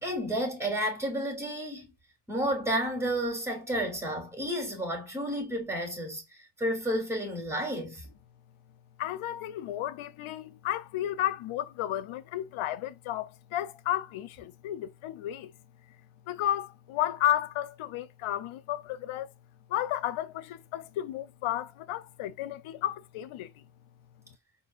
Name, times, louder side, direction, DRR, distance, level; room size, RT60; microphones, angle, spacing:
voice 1, 0.0-1.9 2.3-8.1, equal, 5° right, 2.9 m, -31 dB
voice 2, 9.0-15.5 16.3-19.3 19.7-23.6, left 13 dB, 80° left, 0.8 m, -33 dB
4.6 x 4.2 x 2.5 m
cardioid pair, 95°, 48 cm